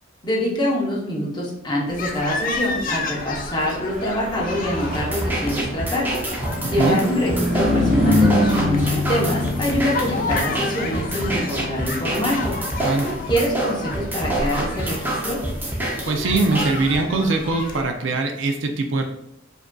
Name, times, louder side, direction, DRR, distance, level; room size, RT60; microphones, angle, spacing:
voice 1, 0.2-12.6 13.3-15.4, equal, 20° left, -4 dB, 0.8 m, -25 dB
sound 1, 1.9-17.8, left 3 dB, 45° left, 0.4 m, -32 dB
Car passing by / Truck, 3.6-17.3, left 1 dB, 30° right, 1.1 m, -26 dB
sound 2, 4.9-17.0, right 1 dB, 10° right, 0.6 m, -27 dB
voice 2, 6.6-7.0 12.8-13.1 16.1-19.1, right 3 dB, 65° right, 4 dB, 0.4 m, -22 dB
4.9 x 2.6 x 2.2 m, 0.76 s
head